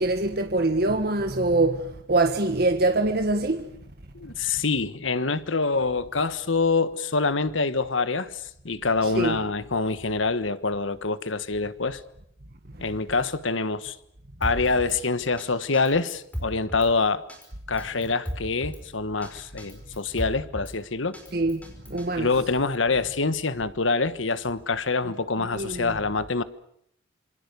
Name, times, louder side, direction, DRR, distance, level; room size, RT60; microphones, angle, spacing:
voice 1, 0.0-3.7 9.0-9.4 21.3-22.3 25.5-25.9, right 2 dB, 55° right, 1.6 m, -24 dB
voice 2, 4.1-12.0 12.8-14.0 14.4-17.2 17.7-21.1 22.2-26.4, left 4 dB, 85° left, 1.4 m, -26 dB
Drum kit, 14.4-15.0 15.4-15.5 15.7-16.9 17.3-17.5 17.8-18.8 19.2-19.3 19.6-20.7 21.1-22.1, equal, 10° left, 5.2 m, -35 dB
27.0 x 25.5 x 6.9 m
head